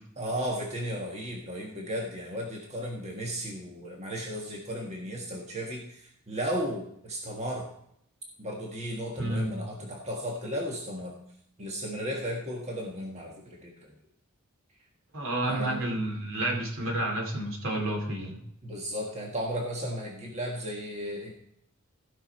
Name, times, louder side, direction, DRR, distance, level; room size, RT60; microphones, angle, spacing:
voice 1, 0.2-7.7 8.4-11.2 11.6-13.9 15.5-15.9 18.6-21.3, equal, 30° right, -1 dB, 1.6 m, -35 dB
voice 2, 9.2-9.7 15.1-18.4, right 1 dB, 65° right, 2 dB, 2.6 m, -30 dB
15.5 x 6.1 x 4.5 m, 0.71 s
head